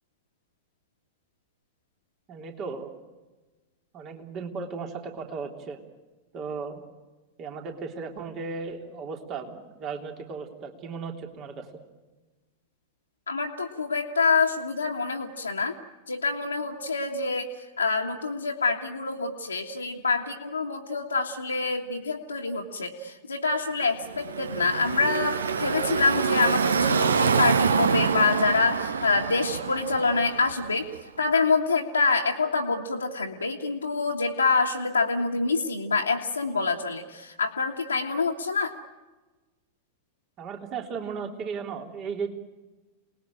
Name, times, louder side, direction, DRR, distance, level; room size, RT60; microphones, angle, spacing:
voice 1, 2.3-2.9 3.9-5.8 6.3-6.8 7.4-11.7 40.4-42.3, right 5 dB, 35° right, 4 dB, 3.3 m, -35 dB
voice 2, 13.3-15.7 16.1-17.5 17.8-30.9 31.2-38.7, left 4 dB, 80° left, -2 dB, 1.8 m, -26 dB
Car passing by / Traffic noise roadway noise, 24.0-31.0, right 6 dB, 70° right, 1.0 m, -26 dB
29.0 x 20.0 x 9.0 m, 1.2 s
figure-of-eight pair, 90°, 0 cm